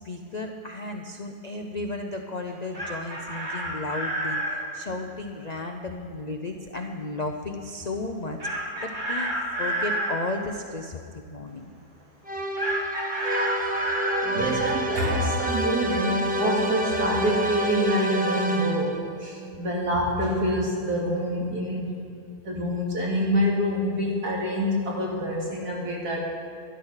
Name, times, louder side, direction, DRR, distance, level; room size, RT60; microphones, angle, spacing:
voice 1, 0.0-11.7, left 2 dB, 50° left, 4 dB, 0.4 m, -34 dB
Chicken rooster, 2.5-4.6 8.4-10.2 12.6-14.3, right 1 dB, 30° right, 2.1 m, -29 dB
sound 1, 12.3-19.1, right 1 dB, 10° right, 0.4 m, -28 dB
voice 2, 14.2-21.9 22.4-26.3, equal, 70° right, -3 dB, 2.9 m, -26 dB
12.5 x 11.5 x 5.7 m, 2.5 s
omnidirectional pair, 1.7 m